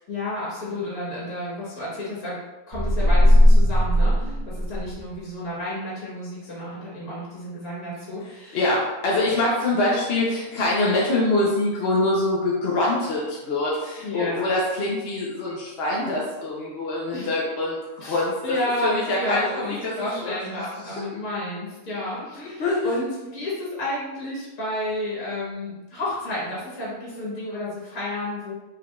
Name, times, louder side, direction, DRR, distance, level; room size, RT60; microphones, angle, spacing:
voice 1, 0.1-2.4 2.7-8.6 14.0-14.5 17.1-17.3 18.0-28.5, left 1 dB, 70° left, -7 dB, 1.9 m, -31 dB
sound 1, 2.7-5.1, left 1 dB, 65° right, 0.4 m, -17 dB
voice 2, 8.5-18.6 18.8-21.0 22.1-22.9, left 2 dB, 50° left, -5 dB, 0.8 m, -25 dB
4.8 x 3.7 x 2.3 m, 1.1 s
omnidirectional pair, 1.6 m